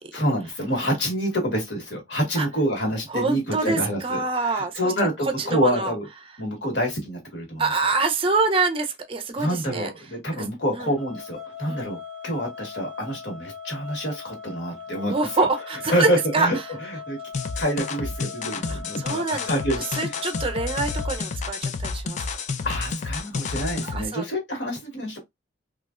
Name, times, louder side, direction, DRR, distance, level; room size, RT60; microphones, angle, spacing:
voice 1, 0.1-6.1 6.4-7.6 9.4-12.0 12.2-15.5 15.9-17.2 17.6-20.2 22.6-25.2, equal, 65° left, 1.4 m, -27 dB
voice 2, 3.1-4.9 5.4-5.9 7.6-9.9 10.3-10.5 10.7-10.9 11.7-11.9 15.1-16.1 16.3-16.5 18.7-19.5 20.0-22.2 23.8-24.2, right 3 dB, 30° right, 0.5 m, -25 dB
sound 1, 11.0-21.2, left 6 dB, ahead, 0.8 m, -39 dB
sound 2, 17.3-24.1, left 4 dB, 40° left, 0.3 m, -30 dB
3.2 x 2.5 x 2.3 m
head